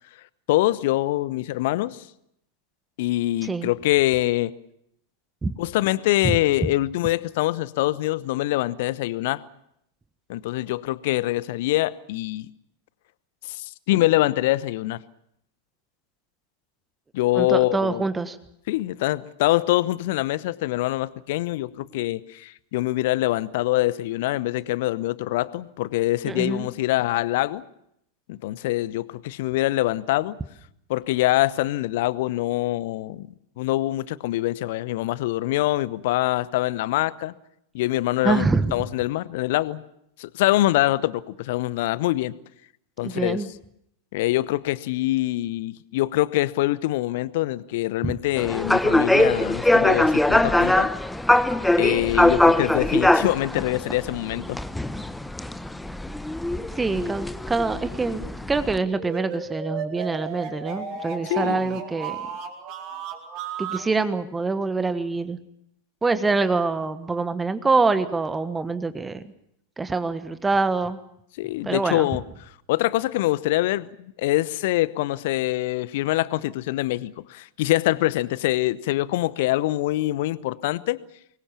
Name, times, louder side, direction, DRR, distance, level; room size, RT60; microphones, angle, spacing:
voice 1, 0.5-2.0 3.0-4.5 5.6-9.4 10.3-12.5 13.4-15.0 17.1-18.0 18.7-27.6 28.3-30.4 30.9-33.3 33.6-37.3 37.7-38.4 38.7-39.8 40.2-42.3 43.0-43.4 44.1-50.9 51.8-54.6 61.3-61.8 71.4-72.2 72.7-81.0, left 17 dB, 50° left, 19 dB, 0.9 m, -24 dB
voice 2, 17.3-18.4 21.9-22.0 26.3-26.7 38.2-38.7 43.0-43.5 48.0-48.1 56.7-58.2 58.5-62.2 63.6-65.4 66.0-69.2 69.8-71.0 71.6-72.1, right 3 dB, 10° right, 12 dB, 1.3 m, -25 dB
sound 1, 48.4-58.8, left 1 dB, 5° left, 0.9 m, -22 dB
sound 2, 58.9-63.9, right 7 dB, 40° right, 4.5 m, -34 dB
24.5 x 21.5 x 7.2 m, 0.76 s
figure-of-eight pair, 90°, 0 cm